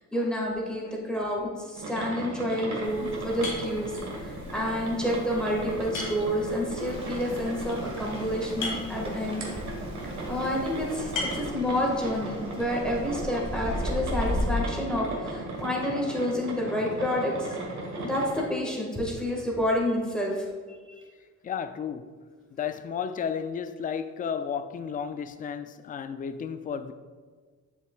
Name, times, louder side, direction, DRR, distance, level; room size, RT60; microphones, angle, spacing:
voice 1, 0.1-9.4 10.3-17.6 18.0-20.8, left 1 dB, 5° left, -3 dB, 1.7 m, -29 dB
sound 1, 1.8-18.5, right 2 dB, 65° right, 1.5 m, -36 dB
sound 2, 2.8-11.5, left 3 dB, 70° left, 1.8 m, -40 dB
Rain, 6.7-14.5, equal, 20° right, 1.6 m, -37 dB
voice 2, 21.4-22.1 22.5-26.9, left 7 dB, 30° left, 11 dB, 0.4 m, -33 dB
7.3 x 6.7 x 2.3 m, 1.5 s
cardioid pair, 90°, 30 cm